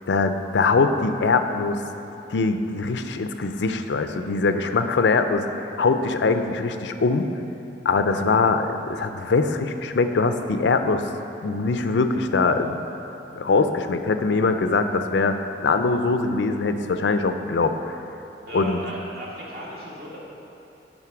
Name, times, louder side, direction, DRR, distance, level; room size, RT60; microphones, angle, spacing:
voice 1, 0.1-1.8 2.3-7.3 7.8-11.1 11.4-12.8 13.3-15.4 15.6-17.9 18.5-18.8, left 4 dB, 80° left, 8 dB, 0.5 m, -22 dB
voice 2, 18.5-20.2, right 1 dB, 60° right, -5 dB, 1.7 m, -36 dB
10.5 x 3.8 x 5.9 m, 3.0 s
head